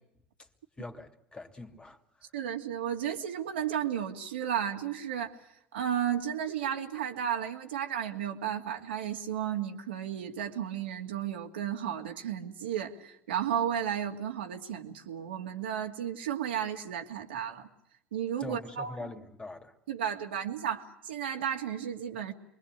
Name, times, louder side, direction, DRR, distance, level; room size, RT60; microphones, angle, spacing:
voice 1, 0.8-2.0 18.4-19.7, left 2 dB, 15° left, 2.7 m, -43 dB
voice 2, 2.3-5.4 5.7-17.7 18.1-19.0 19.9-22.3, right 9 dB, 80° right, 2.5 m, -33 dB
28.0 x 22.5 x 8.2 m
hypercardioid pair, 80°, 6 cm